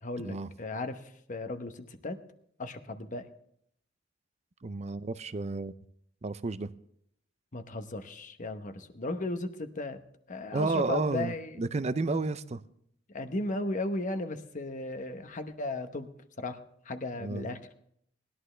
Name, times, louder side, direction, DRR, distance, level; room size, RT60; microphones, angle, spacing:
voice 1, 0.0-2.2 2.6-3.3 7.5-10.0 10.3-11.6 13.1-16.1 16.4-16.6 16.8-17.6, left 2 dB, 45° left, 8 dB, 1.0 m, -36 dB
voice 2, 4.6-5.7 6.2-6.7 10.5-12.6 17.2-17.5, right 3 dB, 35° right, 14 dB, 0.5 m, -31 dB
20.0 x 11.5 x 3.3 m, 0.70 s
head